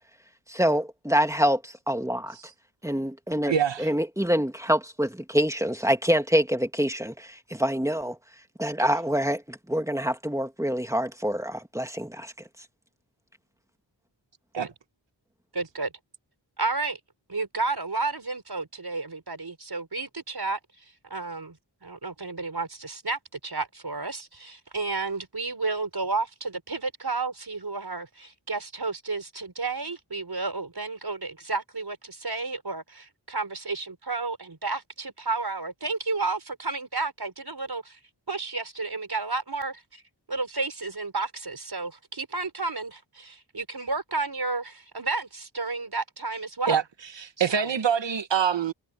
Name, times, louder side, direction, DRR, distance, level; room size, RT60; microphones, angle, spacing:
voice 1, 0.5-2.4 2.8-3.5 3.8-8.2 8.6-12.3, equal, 5° right, 2.3 m, -26 dB
voice 2, 3.5-3.9 14.5-14.7 46.7-46.8 47.1-48.7, right 7 dB, 75° right, 1.1 m, -25 dB
voice 3, 15.5-15.9 16.6-17.0 17.3-20.6 21.1-38.0 38.3-40.0 40.3-46.8 47.4-47.6, right 3 dB, 55° right, 5.2 m, -32 dB
cardioid pair, 45°, 44 cm